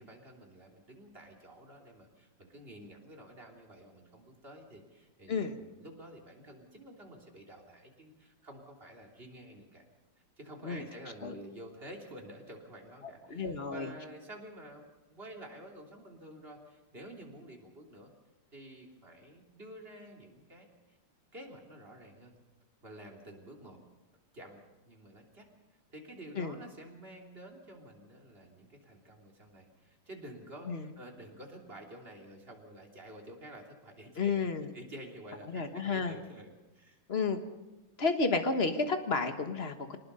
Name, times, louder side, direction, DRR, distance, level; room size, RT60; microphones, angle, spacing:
voice 1, 0.0-9.8 10.4-18.1 18.5-21.0 21.3-22.3 22.8-23.8 24.3-25.5 25.9-34.5 34.7-37.0, right 1 dB, 25° right, 0 dB, 3.3 m, -50 dB
voice 2, 13.3-13.9 26.4-26.6 30.7-30.9 34.2-34.7 35.5-36.1 37.1-37.4 38.0-40.0, left 4 dB, 35° left, 7 dB, 1.4 m, -31 dB
24.5 x 19.5 x 5.6 m, 1.0 s
omnidirectional pair, 2.4 m